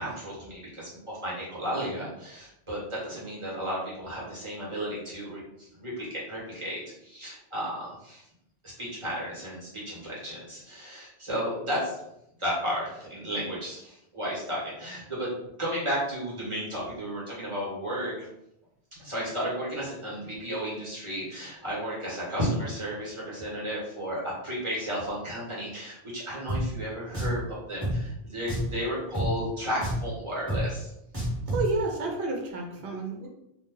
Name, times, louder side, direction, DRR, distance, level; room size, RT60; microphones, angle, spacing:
voice 1, 0.0-8.2 8.6-12.0 12.4-15.3 15.6-18.3 19.0-30.9, equal, 30° right, -7 dB, 1.2 m, -33 dB
Drum, 26.5-26.6 27.1-27.4 27.8-27.9 28.5-28.7 29.1-29.3 29.8-30.1 30.5-30.6 31.1-31.7, equal, 10° right, 1.2 m, -29 dB
voice 2, 31.5-33.3, right 3 dB, 70° right, 1 dB, 0.9 m, -30 dB
2.5 x 2.2 x 3.6 m, 0.80 s
omnidirectional pair, 1.1 m